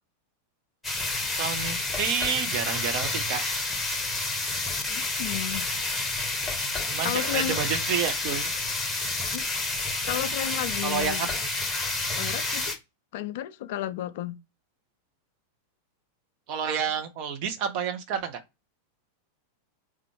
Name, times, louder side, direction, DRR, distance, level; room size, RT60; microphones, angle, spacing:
sound 1, 0.8-12.8, left 2 dB, 10° left, 0.8 m, -29 dB
voice 1, 1.4-3.4 6.6-8.5 10.8-11.3 16.5-18.4, right 7 dB, 45° right, 0.7 m, -29 dB
voice 2, 4.9-5.7 7.0-7.6 9.3-9.4 10.1-11.3 12.2-12.8 13.1-14.4, left 11 dB, 50° left, 0.3 m, -32 dB
3.4 x 2.4 x 2.9 m
figure-of-eight pair, 90°, 0 cm